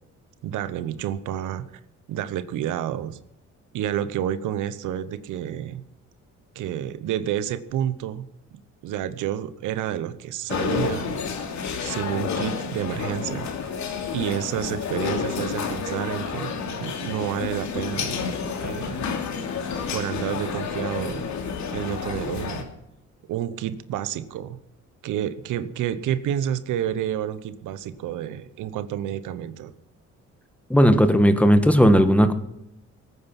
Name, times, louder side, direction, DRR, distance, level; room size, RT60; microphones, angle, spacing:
voice 1, 0.4-1.6 2.1-3.2 3.7-5.8 6.5-8.2 8.8-11.2 11.8-13.8 14.1-18.2 18.6-19.0 19.9-21.3 21.7-22.6 23.3-24.6 25.0-29.7, right 10 dB, 90° right, 13 dB, 1.0 m, -29 dB
sound 1, 10.5-22.6, left 6 dB, 70° left, 2.6 m, -30 dB
voice 2, 30.7-32.3, equal, 5° left, 9 dB, 1.5 m, -16 dB
18.5 x 9.4 x 5.8 m, 0.82 s
cardioid pair, 90°, 30 cm